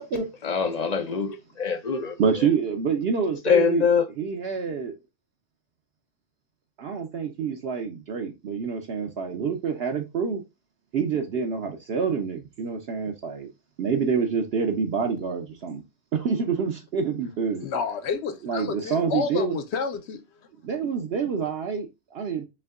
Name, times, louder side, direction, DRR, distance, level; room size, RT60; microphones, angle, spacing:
voice 1, 0.4-2.2 3.5-4.1, left 6 dB, 50° left, 0.5 m, -23 dB
voice 2, 2.2-3.9 4.2-4.9 6.8-10.4 10.9-13.5 13.8-15.8 16.1-17.6 18.4-19.6 20.6-22.4, right 6 dB, 60° right, 0.9 m, -27 dB
voice 3, 17.6-20.2, left 6 dB, 70° left, 0.9 m, -30 dB
5.6 x 2.7 x 2.4 m
omnidirectional pair, 1.2 m